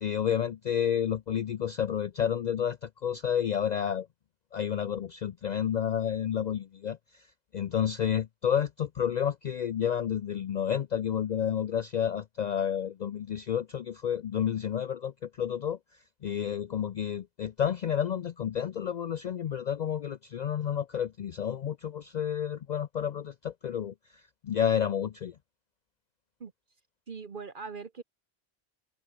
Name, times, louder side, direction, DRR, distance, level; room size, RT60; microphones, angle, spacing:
voice 1, 0.0-4.1 4.5-7.0 7.5-15.8 16.2-23.9 24.4-25.4, left 9 dB, 55° left, 0.5 m, -30 dB
voice 2, 27.1-28.0, right 5 dB, 55° right, 1.2 m, -40 dB
omnidirectional pair, 1.1 m